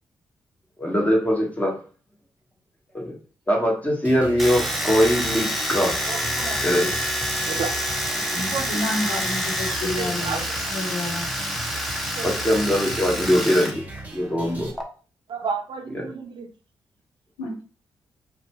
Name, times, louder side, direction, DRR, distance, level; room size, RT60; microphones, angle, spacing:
voice 1, 0.8-1.8 2.9-3.1 3.5-5.9 6.6-6.9 12.2-13.8 14.1-14.7 15.9-16.1, equal, 15° left, -1 dB, 1.3 m, -21 dB
sound 1, 4.0-14.7, right 2 dB, 15° right, 1.0 m, -37 dB
Domestic sounds home sounds, 4.4-13.7 14.0-14.8, equal, ahead, 0.7 m, -27 dB
voice 2, 6.0-6.6 7.5-7.7 8.4-9.2 9.8-10.7 12.2-12.4 15.3-16.5, right 5 dB, 60° right, 5 dB, 0.5 m, -32 dB
voice 3, 8.1-10.4 10.7-11.3 17.4-17.6, left 1 dB, 90° left, -2 dB, 0.8 m, -30 dB
2.6 x 2.2 x 2.9 m, 0.37 s
hypercardioid pair, 40°, 9 cm